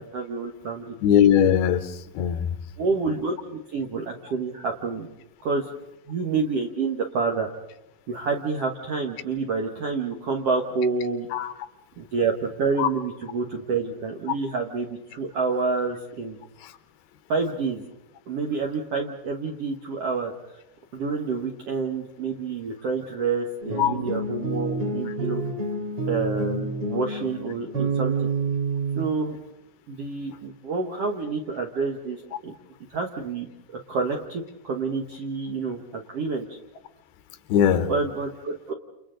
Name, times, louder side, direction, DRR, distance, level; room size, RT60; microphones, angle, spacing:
voice 1, 0.0-1.0 2.8-5.1 5.4-5.7 6.1-7.5 8.1-11.3 12.0-16.4 17.3-17.8 18.3-20.3 20.9-25.4 26.1-28.3 29.0-29.4 29.9-32.5 32.9-33.5 33.9-36.6 37.9-38.7, right 4 dB, 60° right, 1 dB, 1.6 m, -28 dB
voice 2, 1.0-1.8 2.1-2.5 11.3-11.5 12.8-12.9 23.8-23.9 37.5-37.9, left 9 dB, 80° left, 11 dB, 2.9 m, -19 dB
sound 1, 23.6-29.1, right 3 dB, 35° right, 3.5 m, -28 dB
29.5 x 29.0 x 3.9 m, 0.89 s
omnidirectional pair, 4.5 m